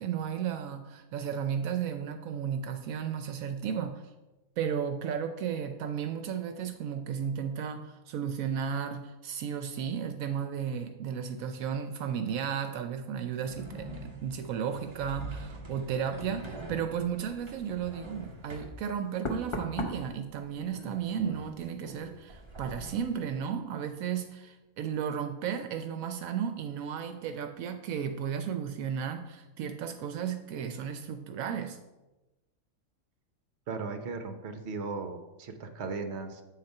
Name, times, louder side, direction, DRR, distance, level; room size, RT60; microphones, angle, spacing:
voice 1, 0.0-4.0 4.6-31.8, right 8 dB, 80° right, 7 dB, 1.0 m, -34 dB
sound 1, 13.4-18.8 22.2-23.0, right 1 dB, 25° right, 0.8 m, -44 dB
Knock, 18.2-18.4 19.2-22.7 23.0-23.4, left 2 dB, 30° left, 0.6 m, -40 dB
voice 2, 33.7-36.4, right 4 dB, 55° right, 6 dB, 1.0 m, -37 dB
8.4 x 4.1 x 5.3 m, 1.1 s
omnidirectional pair, 1.4 m